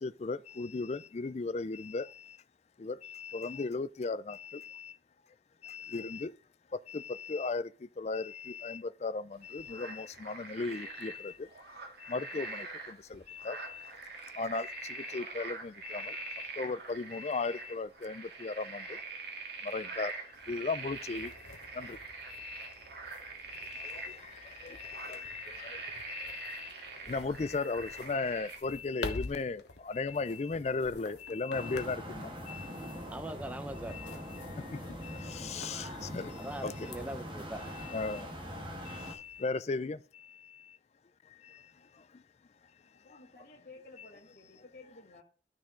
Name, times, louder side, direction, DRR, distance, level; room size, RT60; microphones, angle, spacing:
voice 1, 0.0-2.0 2.8-4.8 5.6-6.3 6.9-7.6 8.0-9.2 9.5-11.3 12.1-12.7 13.1-13.8 14.4-18.8 19.7-20.1 20.5-21.3 21.8-21.9 22.3-22.6 23.7-24.2 24.6-25.8 26.1-26.7 27.1-29.6 29.9-32.0 32.5-32.6 33.9-34.1 35.3-35.9 36.1-36.3 36.6-36.7 37.9-38.3 39.1-40.0, left 4 dB, 35° left, 0.4 m, -36 dB
sound 1, 9.3-28.6, right 4 dB, 65° right, 1.9 m, -44 dB
sound 2, 20.3-39.4, left 3 dB, 80° left, 1.1 m, -49 dB
sound 3, 31.5-39.1, equal, 30° right, 1.4 m, -42 dB
voice 2, 33.1-33.9 36.4-37.9, right 1 dB, 10° right, 0.7 m, -41 dB
voice 3, 42.9-45.2, left 2 dB, 55° left, 2.2 m, -54 dB
11.5 x 6.2 x 3.8 m
head